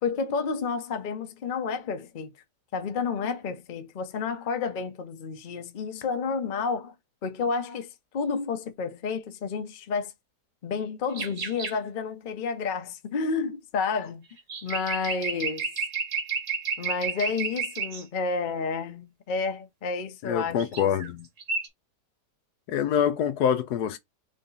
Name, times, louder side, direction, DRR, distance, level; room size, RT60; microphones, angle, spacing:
voice 1, 0.0-2.3 2.7-6.9 7.2-10.1 10.6-14.2 14.6-15.7 16.8-20.9, left 5 dB, 40° left, 0.7 m, -30 dB
sound 1, 11.1-11.8 14.4-18.0 20.6-21.1 21.4-21.7, right 5 dB, 50° right, 1.4 m, -31 dB
voice 2, 20.2-21.3 22.7-24.0, left 8 dB, 75° left, 1.1 m, -25 dB
3.8 x 3.5 x 3.9 m
omnidirectional pair, 1.8 m